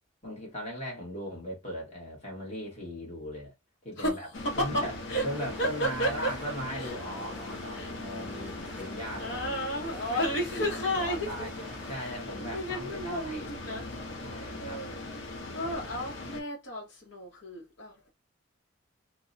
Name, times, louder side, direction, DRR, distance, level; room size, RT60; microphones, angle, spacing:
voice 1, 0.2-3.5 3.8-4.3 4.6-5.0 5.2-11.5 11.9-13.5 14.2-14.8 15.6-15.8, equal, 35° left, 1.3 m, -39 dB
voice 2, 4.0-4.8 5.1-5.2 5.6-6.3 6.7-6.9 7.7-7.9 9.2-11.3 11.9-13.9 14.6-15.0 15.5-18.1, equal, 60° left, 1.0 m, -32 dB
sound 1, 4.3-16.4, left 2 dB, 85° left, 0.6 m, -40 dB
sound 2, 5.1-12.0, equal, 5° right, 0.6 m, -49 dB
2.8 x 2.0 x 2.5 m
head